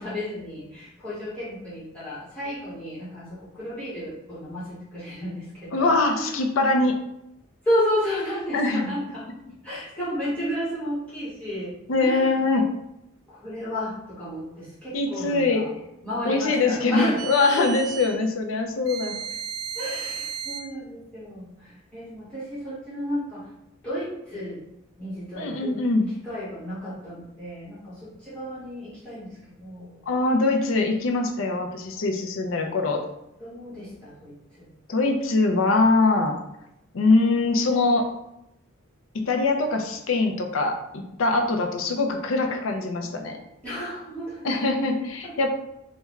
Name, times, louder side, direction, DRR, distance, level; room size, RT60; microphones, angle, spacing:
voice 1, 0.0-6.4 7.6-9.3 9.6-11.7 12.0-12.4 13.3-15.7 16.0-17.2 17.5-17.7 19.7-23.5 23.8-24.6 25.0-25.8 26.2-30.0 33.4-34.7 41.4-41.7 43.6-44.5 45.2-45.5, equal, 5° left, -12 dB, 1.2 m, -32 dB
voice 2, 5.7-6.9 8.5-8.9 11.9-12.6 14.9-15.6 16.2-19.1 25.3-26.0 30.1-33.1 34.9-36.4 36.9-38.1 39.3-43.4 44.4-45.5, left 3 dB, 75° left, 4 dB, 0.5 m, -23 dB
sound 1, 17.2-18.2 18.9-20.7, right 7 dB, 85° right, 0.4 m, -34 dB
3.5 x 2.2 x 3.1 m, 0.84 s
head